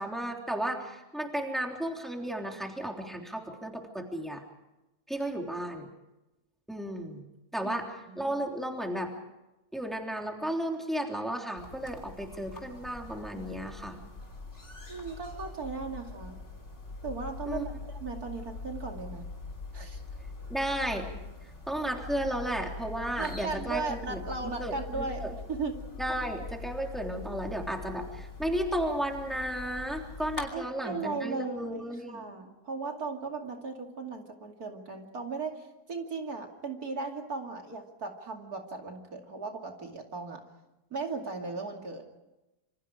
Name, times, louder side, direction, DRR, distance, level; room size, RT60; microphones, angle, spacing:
voice 1, 0.0-4.4 5.1-5.9 6.7-7.2 7.5-9.1 9.7-14.0 17.5-17.7 20.5-21.1 21.7-25.3 26.0-32.2, right 1 dB, ahead, 1 dB, 3.4 m, -34 dB
voice 2, 8.1-8.4 14.9-16.4 17.0-19.3 19.7-20.0 23.2-25.8 30.5-40.4 40.9-42.0, right 4 dB, 70° right, 2 dB, 3.1 m, -37 dB
sound 1, 11.6-30.5, left 3 dB, 45° left, 3.6 m, -43 dB
27.5 x 26.0 x 5.0 m, 1.0 s
omnidirectional pair, 1.7 m